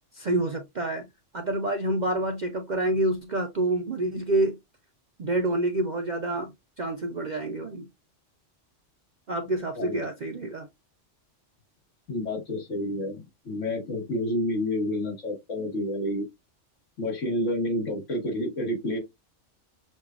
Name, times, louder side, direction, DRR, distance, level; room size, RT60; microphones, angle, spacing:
voice 1, 0.1-1.1 1.3-4.6 5.2-7.9 9.3-10.7, right 2 dB, 50° right, 0.6 m, -28 dB
voice 2, 12.1-16.3 17.0-19.0, left 1 dB, 80° left, 2.0 m, -29 dB
6.3 x 2.3 x 2.4 m
omnidirectional pair, 1.3 m